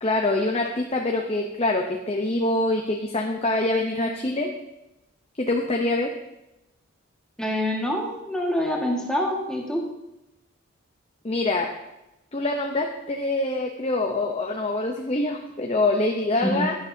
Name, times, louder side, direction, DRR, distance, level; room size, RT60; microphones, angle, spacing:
voice 1, 0.0-4.5 5.4-6.1 11.2-11.7 12.3-16.7, left 2 dB, 25° left, 1 dB, 0.7 m, -25 dB
voice 2, 7.4-9.8 16.4-16.7, equal, 5° left, -2 dB, 1.7 m, -26 dB
12.5 x 11.0 x 2.8 m, 0.93 s
head